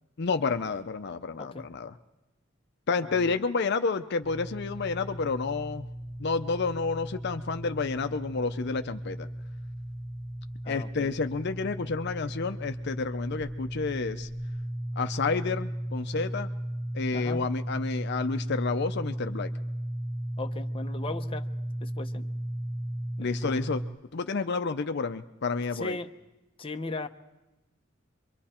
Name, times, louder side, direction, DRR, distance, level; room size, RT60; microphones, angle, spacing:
voice 1, 0.2-2.0 2.9-5.9 6.2-9.3 10.7-14.3 15.0-16.5 16.9-19.5 23.2-23.8 24.1-26.0, left 4 dB, 55° left, 9 dB, 0.6 m, -30 dB
voice 2, 3.0-3.4 10.6-11.1 17.1-17.4 20.4-21.5 21.8-22.3 23.2-23.6 25.7-26.1 26.6-27.1, left 2 dB, 25° left, 6 dB, 0.8 m, -37 dB
sound 1, 4.2-23.8, right 1 dB, 45° right, 1.9 m, -36 dB
26.5 x 23.5 x 4.4 m, 1.0 s
head